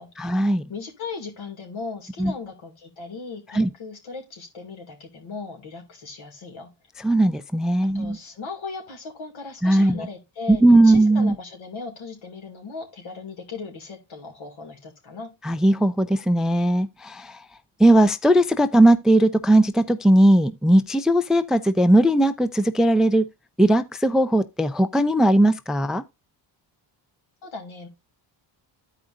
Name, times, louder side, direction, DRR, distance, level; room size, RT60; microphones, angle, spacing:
voice 1, 0.2-0.6 2.2-2.3 3.5-3.7 7.0-8.2 9.6-10.1 10.5-11.3 15.4-17.4 17.8-23.3 23.6-26.0, right 1 dB, ahead, 0.4 m, -18 dB
voice 2, 0.7-6.7 7.8-15.3 27.4-27.9, left 4 dB, 75° left, 2.5 m, -37 dB
13.5 x 4.9 x 2.5 m
cardioid pair, 70°, 48 cm